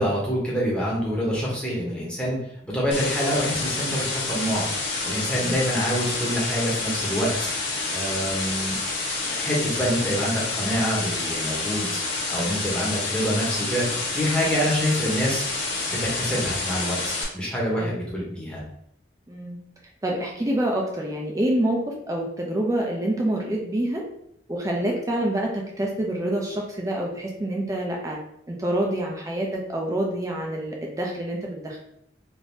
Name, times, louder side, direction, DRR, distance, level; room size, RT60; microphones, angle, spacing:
voice 1, 0.0-2.4 2.7-4.6 5.0-7.5 7.9-8.8 9.3-12.0 12.3-15.4 15.9-17.0 17.3-18.6, equal, 5° left, -5 dB, 0.8 m, -26 dB
sound 1, 2.9-17.2, left 3 dB, 70° left, 1.1 m, -28 dB
voice 2, 19.3-19.6 20.0-24.0 24.5-28.2 28.5-31.8, right 1 dB, 20° right, -1 dB, 0.4 m, -27 dB
3.4 x 2.6 x 2.6 m, 0.74 s
head